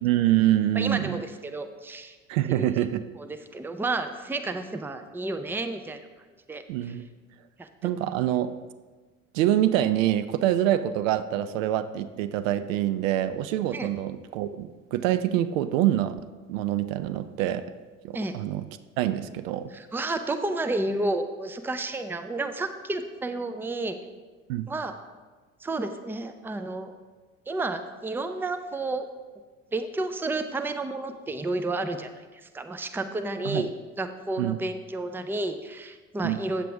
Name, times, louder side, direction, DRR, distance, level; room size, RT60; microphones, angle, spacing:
voice 1, 0.0-1.2 2.3-3.0 6.7-7.0 7.8-8.5 9.3-16.2 16.5-17.6 18.0-18.6 19.0-19.7 24.5-24.7 33.4-33.7 34.4-34.6 36.2-36.4, right 12 dB, 70° right, 13 dB, 0.5 m, -25 dB
voice 2, 0.8-2.2 2.5-2.7 3.2-6.0 6.5-6.9 7.6-7.9 13.7-13.9 18.1-18.3 19.7-24.0 24.7-24.9 25.6-26.9 27.5-29.1 29.7-32.1 32.5-33.7 34.0-36.6, right 2 dB, 5° right, 8 dB, 0.5 m, -31 dB
8.4 x 7.6 x 3.5 m, 1.3 s
hypercardioid pair, 65°, 40 cm